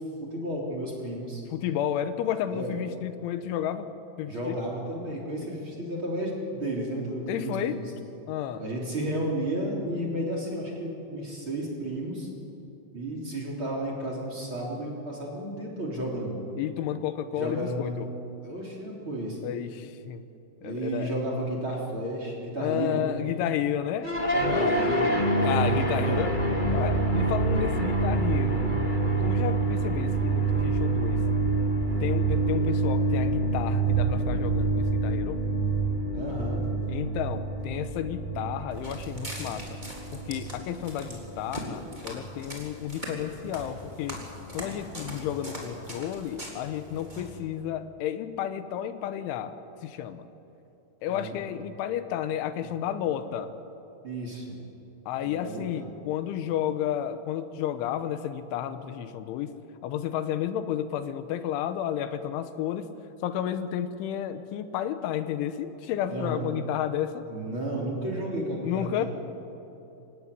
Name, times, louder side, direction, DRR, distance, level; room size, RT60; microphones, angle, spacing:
voice 1, 0.2-1.4 2.5-2.8 4.3-7.9 8.6-12.3 12.9-16.4 17.3-18.0 18.4-19.4 20.6-23.0 24.5-25.2 25.7-26.3 36.1-36.7 51.0-51.4 54.0-54.6 55.2-55.9 66.1-66.5 67.3-69.1, right 1 dB, 30° right, -2 dB, 3.5 m, -33 dB
voice 2, 1.5-3.9 4.2-4.6 5.4-5.5 7.3-7.8 8.3-8.6 16.6-18.1 19.4-20.2 20.6-21.1 22.6-24.7 25.3-26.4 26.7-28.7 29.2-31.3 32.0-35.4 36.9-39.7 40.1-44.2 44.5-49.6 49.8-50.3 51.0-53.5 55.1-59.5 59.8-62.9 63.2-67.3 68.6-69.1, left 10 dB, 85° left, 11 dB, 3.4 m, -32 dB
sound 1, 24.0-42.3, right 3 dB, 45° left, 0.6 m, -26 dB
Walk footsteps, 38.7-47.4, equal, 10° right, 2.9 m, -41 dB
26.0 x 16.5 x 9.6 m, 2.9 s
omnidirectional pair, 5.5 m